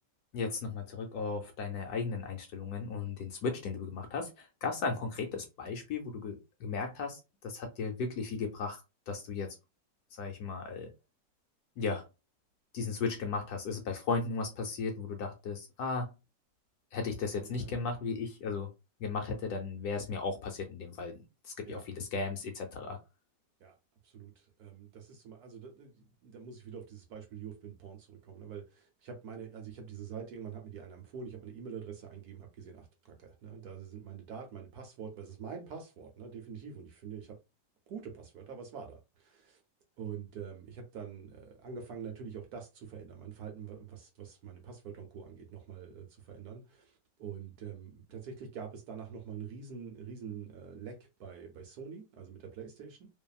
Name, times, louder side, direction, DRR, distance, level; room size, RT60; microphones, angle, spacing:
voice 1, 0.3-9.5 10.2-10.9 11.8-12.1 12.7-16.1 16.9-18.7 19.0-23.0, left 4 dB, 70° left, 1.0 m, -36 dB
voice 2, 17.3-17.9 21.6-21.8 23.6-23.7 24.0-37.4 37.9-39.6 40.0-53.1, right 6 dB, 65° right, 1.1 m, -45 dB
2.7 x 2.5 x 2.3 m
omnidirectional pair, 1.9 m